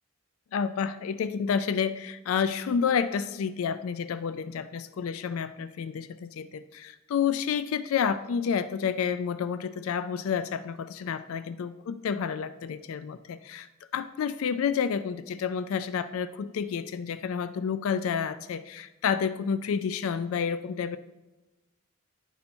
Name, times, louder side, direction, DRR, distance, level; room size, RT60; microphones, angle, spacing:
voice 1, 0.5-21.0, left 7 dB, 85° left, 14 dB, 0.3 m, -30 dB
10.5 x 5.5 x 4.3 m, 1.1 s
head